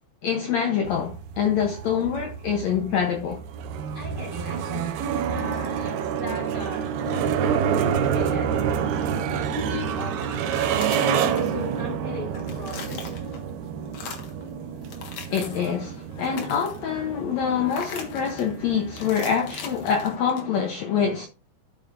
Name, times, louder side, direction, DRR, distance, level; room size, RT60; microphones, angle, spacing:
voice 1, 0.2-3.4 15.3-21.3, left 7 dB, 90° left, 1.5 m, -25 dB
sound 1, 0.8-20.2, right 8 dB, 80° right, 2.8 m, -28 dB
voice 2, 3.9-4.9 5.3-8.9 9.5-10.6 10.9-13.3, left 3 dB, 30° left, 3.5 m, -38 dB
sound 2, 10.4-11.9 12.2-13.5 13.9-14.4 14.8-15.8 16.1-16.9 17.7-18.5 19.0-20.7, left 5 dB, 55° left, 2.4 m, -40 dB
12.0 x 7.4 x 2.6 m
omnidirectional pair, 4.5 m